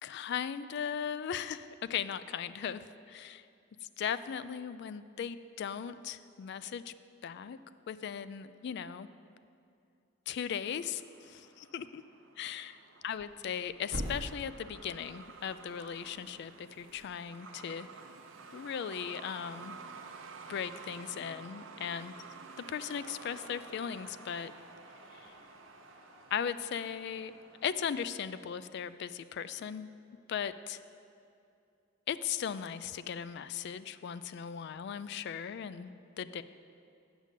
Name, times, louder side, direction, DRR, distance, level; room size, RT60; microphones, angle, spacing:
voice 1, 0.0-2.8 3.1-3.4 4.0-6.9 7.2-7.6 7.9-9.1 10.3-12.0 12.4-12.8 13.0-17.9 18.5-19.8 20.5-22.1 22.6-24.5 25.1-25.2 26.3-27.3 27.6-29.9 30.3-30.8 32.1-36.4, left 8 dB, 60° left, 14 dB, 0.3 m, -38 dB
Truck, 10.6-28.0, right 4 dB, 75° right, 0.6 m, -52 dB
Thump thud, 13.0-17.1, equal, 55° right, 1.0 m, -45 dB
sound 1, 22.9-28.7, left 2 dB, 75° left, 1.0 m, -59 dB
8.1 x 6.4 x 6.6 m, 2.6 s
head